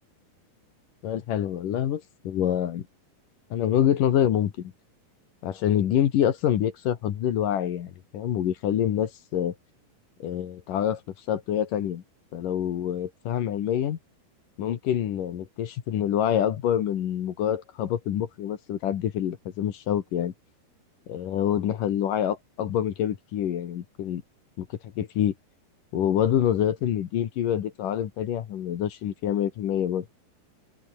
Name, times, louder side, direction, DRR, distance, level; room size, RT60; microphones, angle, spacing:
voice 1, 1.0-2.9 3.5-4.7 5.4-9.5 10.2-11.0 11.3-12.0 12.3-14.0 14.6-20.3 21.1-24.2 24.6-24.7 25.0-25.3 25.9-30.1, left 10 dB, 60° left, 2.9 m, -26 dB
omnidirectional pair, 4.8 m